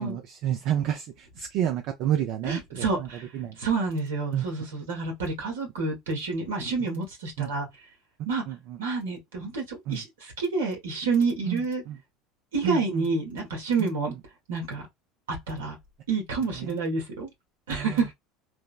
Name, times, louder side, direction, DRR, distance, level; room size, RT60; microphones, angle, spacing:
voice 1, 0.0-3.1 3.3-3.6 4.3-4.5 7.4-7.5 8.5-8.8 9.9-10.0 11.5-11.6 11.9-12.0 12.6-13.1 16.6-16.8 17.7-18.0, right 10 dB, 65° right, 0.4 m, -30 dB
voice 2, 2.4-3.3 3.6-7.7 8.2-8.4 8.8-11.8 12.5-14.1 14.5-14.9 15.3-15.7 16.1-17.3 17.7-18.1, right 4 dB, 85° right, 1.2 m, -28 dB
3.2 x 2.0 x 2.4 m
hypercardioid pair, 85°, 0 cm